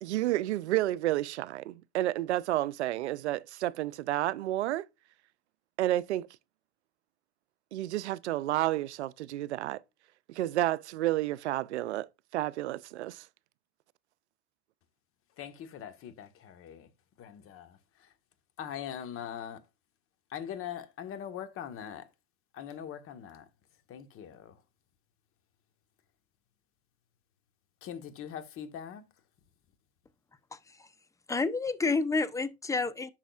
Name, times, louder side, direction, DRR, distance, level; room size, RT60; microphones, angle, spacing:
voice 1, 0.0-4.8 5.8-6.3 7.7-9.8 10.3-12.1 12.3-13.2, right 15 dB, 85° right, 0.5 m, -30 dB
voice 2, 15.4-16.9 17.2-18.1 18.6-19.6 20.3-22.1 22.5-23.5 23.9-24.6 27.8-29.0, left 9 dB, 40° left, 1.3 m, -42 dB
voice 3, 30.5-30.9 31.3-33.1, left 3 dB, 10° left, 0.7 m, -30 dB
10.0 x 6.3 x 2.4 m
hypercardioid pair, 90°, 33 cm